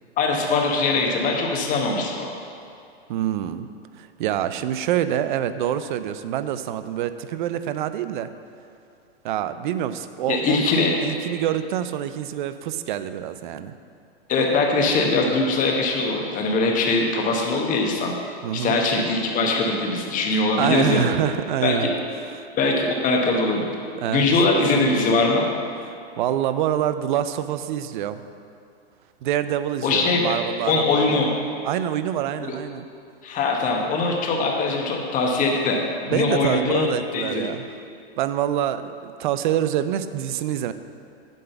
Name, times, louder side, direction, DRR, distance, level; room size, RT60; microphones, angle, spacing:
voice 1, 0.2-2.3 10.3-10.9 14.3-18.1 18.5-21.0 21.6-21.9 22.6-23.7 24.1-25.5 29.8-30.2 30.7-31.3 32.5-32.6 33.2-35.8 36.1-36.9 37.1-37.4, left 3 dB, 25° left, 0 dB, 1.2 m, -21 dB
voice 2, 3.1-3.7 4.0-8.3 9.2-10.6 11.0-13.7 18.4-18.8 20.6-21.9 22.3-22.5 24.0-24.3 26.2-28.2 29.2-31.2 31.6-32.9 36.1-37.7 38.2-40.7, right 11 dB, 50° right, 12 dB, 0.5 m, -26 dB
9.1 x 3.8 x 6.8 m, 2.4 s
hypercardioid pair, 130°, 31 cm